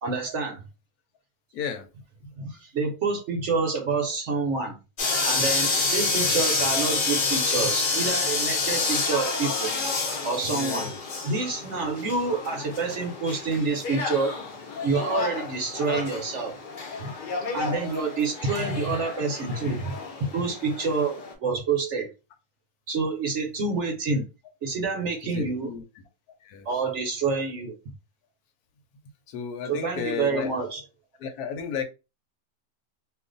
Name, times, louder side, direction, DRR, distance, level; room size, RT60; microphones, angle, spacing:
voice 1, 0.0-0.6 2.4-4.8 5.2-9.7 10.2-10.9 11.2-14.4 14.8-16.6 17.0-17.1 17.5-20.0 20.3-22.1 22.9-24.3 24.6-25.7 26.6-27.8 29.7-30.8, right 4 dB, 60° right, 0.9 m, -27 dB
voice 2, 1.5-1.9 2.2-2.3 10.5-11.0 25.2-25.8 26.4-26.7 29.3-30.5 31.2-31.8, left 7 dB, 80° left, 1.1 m, -33 dB
sound 1, 5.0-21.3, left 4 dB, 50° left, 0.6 m, -29 dB
2.5 x 2.4 x 3.8 m
omnidirectional pair, 1.6 m